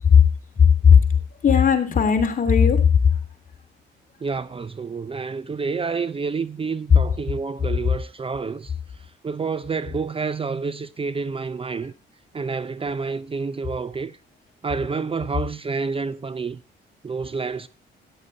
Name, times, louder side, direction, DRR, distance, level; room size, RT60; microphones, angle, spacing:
voice 1, 0.6-1.0 1.4-3.1, left 7 dB, 45° left, 3.1 m, -15 dB
voice 2, 4.2-8.7 9.2-11.9 12.3-14.2 14.6-16.6 17.0-17.7, right 4 dB, 30° right, 0.7 m, -28 dB
13.5 x 10.0 x 4.1 m
cardioid pair, 90°, 20 cm